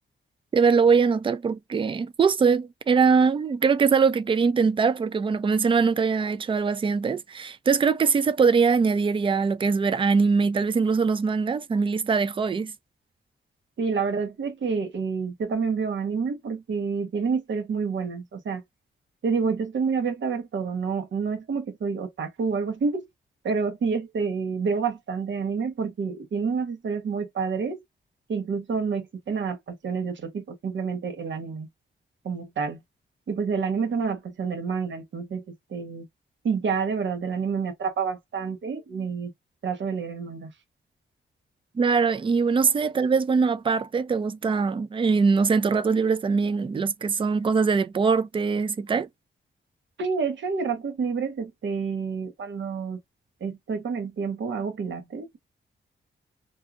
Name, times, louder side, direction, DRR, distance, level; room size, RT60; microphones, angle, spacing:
voice 1, 0.5-12.7 41.8-49.1, right 5 dB, 25° right, 0.4 m, -22 dB
voice 2, 13.8-18.6 19.2-23.0 23.4-27.8 28.3-31.7 32.2-32.8 33.3-35.4 35.7-36.1 36.4-39.3 39.6-40.5 50.0-53.0 53.4-55.4, right 5 dB, 65° right, 1.1 m, -28 dB
2.7 x 2.4 x 2.3 m
cardioid pair, 95°, 20 cm